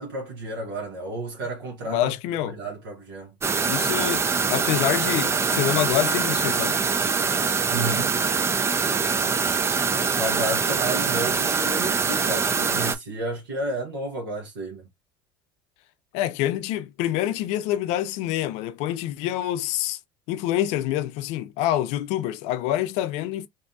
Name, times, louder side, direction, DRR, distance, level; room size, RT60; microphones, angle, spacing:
voice 1, 0.0-2.1 2.5-3.3 7.7-8.2 10.1-14.9, right 2 dB, 85° right, 0.9 m, -31 dB
voice 2, 1.9-2.6 3.6-6.8 16.1-20.0 20.3-23.5, left 13 dB, 65° left, 0.4 m, -26 dB
sound 1, 3.4-12.9, right 5 dB, 20° right, 0.4 m, -24 dB
2.7 x 2.3 x 2.5 m
hypercardioid pair, 80°, 12 cm